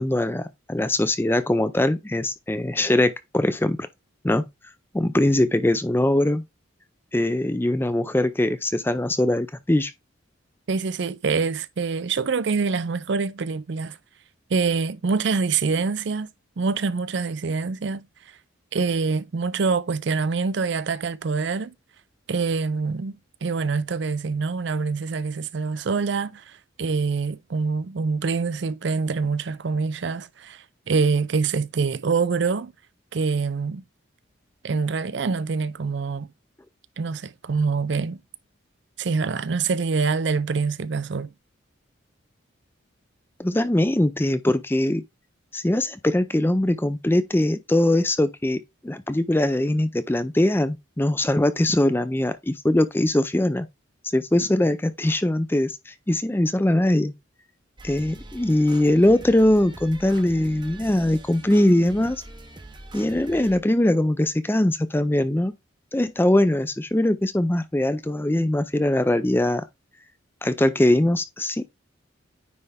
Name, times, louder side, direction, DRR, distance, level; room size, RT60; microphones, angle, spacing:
voice 1, 0.0-3.9 4.2-4.4 4.9-6.4 7.1-9.9 43.4-45.0 45.5-53.7 54.1-57.1 57.8-62.2 62.9-65.5 65.9-69.6 70.4-71.6, left 1 dB, 10° left, 0.4 m, -21 dB
voice 2, 10.7-14.0 14.5-16.3 16.6-18.1 18.7-21.7 22.3-32.7 33.1-33.8 34.6-36.3 37.0-38.2 39.0-41.3, right 4 dB, 55° right, 0.4 m, -25 dB
sound 1, 57.8-63.6, right 2 dB, 25° right, 0.7 m, -43 dB
9.5 x 3.4 x 3.5 m
head